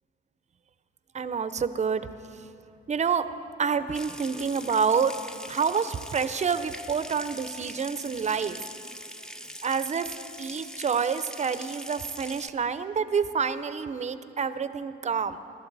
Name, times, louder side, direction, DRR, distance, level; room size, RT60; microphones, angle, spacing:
voice 1, 1.1-2.5 2.9-3.3 3.6-8.6 9.6-10.1 10.4-15.4, right 6 dB, 35° right, 12 dB, 0.6 m, -28 dB
sound 1, 3.6-3.9 4.2-4.8 5.7-6.0, left 1 dB, 85° left, 2.2 m, -55 dB
Water tap faucet / Sink (filling or washing) / Trickle dribble, 3.9-12.5, equal, 5° left, 0.6 m, -42 dB
24.0 x 12.0 x 4.1 m, 2.8 s
cardioid pair, 90°, 20 cm